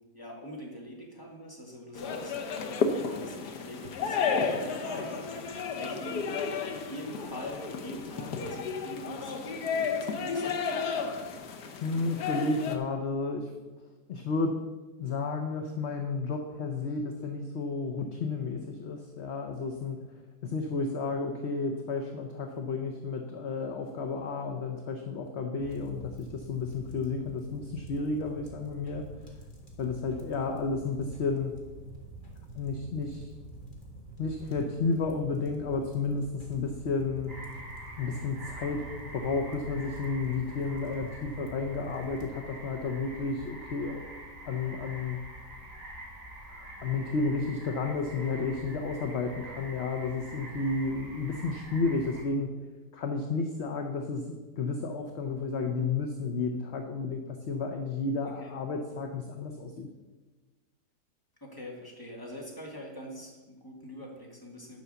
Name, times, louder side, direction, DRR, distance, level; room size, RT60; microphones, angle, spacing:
voice 1, 0.1-6.3 6.6-10.5 58.4-58.5 61.4-64.8, equal, 15° left, -2 dB, 2.3 m, -44 dB
sound 1, 2.0-12.8, left 5 dB, 70° left, 1.5 m, -32 dB
voice 2, 11.8-13.5 14.1-14.6 15.0-20.0 20.4-29.1 29.8-31.5 32.5-33.3 34.2-37.3 38.0-44.0 44.4-45.2 46.5-52.5 52.9-59.9, left 4 dB, 50° left, 3 dB, 0.9 m, -32 dB
sound 2, 25.6-42.3, right 2 dB, 30° left, 1.9 m, -46 dB
sound 3, 37.3-52.2, right 1 dB, 35° right, 2.7 m, -46 dB
10.5 x 5.5 x 6.9 m, 1.2 s
omnidirectional pair, 1.8 m